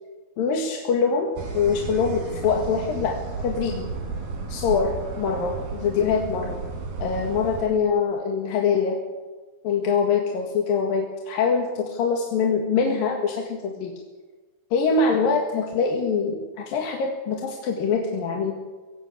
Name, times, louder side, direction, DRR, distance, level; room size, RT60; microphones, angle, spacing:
voice 1, 0.4-3.9 4.5-6.6 7.0-9.0 9.6-14.0 14.7-18.6, left 5 dB, 70° left, 2 dB, 3.6 m, -24 dB
sound 1, 1.4-7.6, right 4 dB, 80° right, 5.8 m, -33 dB
22.5 x 17.5 x 8.4 m, 1.3 s
omnidirectional pair, 4.2 m